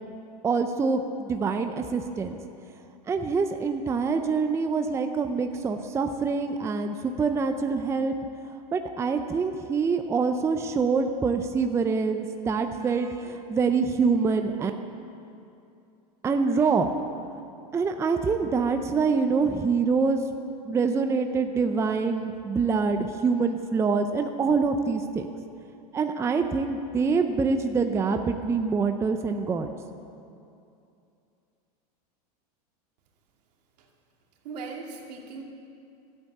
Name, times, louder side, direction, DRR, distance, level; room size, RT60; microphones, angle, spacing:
voice 1, 0.4-2.4 3.1-8.1 8.4-14.7 16.2-16.9 17.7-20.2 20.6-25.3 25.9-29.7, right 4 dB, 15° right, 6 dB, 0.5 m, -25 dB
voice 2, 34.4-35.4, right 4 dB, 80° right, 0 dB, 2.4 m, -38 dB
13.0 x 8.4 x 8.4 m, 2.6 s
supercardioid pair, 135°, 21 cm